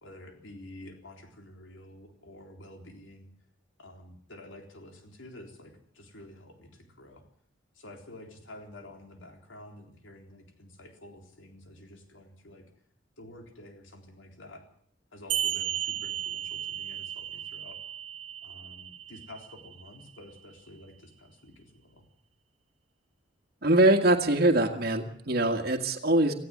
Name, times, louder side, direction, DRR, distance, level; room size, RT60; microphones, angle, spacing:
voice 1, 0.0-3.3 3.8-7.3 7.7-12.6 13.2-14.6 15.1-17.8 18.4-22.1, left 1 dB, 80° left, 4 dB, 3.9 m, -49 dB
sound 1, 15.3-20.3, right 11 dB, 70° right, 1.1 m, -35 dB
voice 2, 23.6-26.3, right 1 dB, 55° right, 3 dB, 1.9 m, -23 dB
18.0 x 15.5 x 9.6 m, 0.64 s
head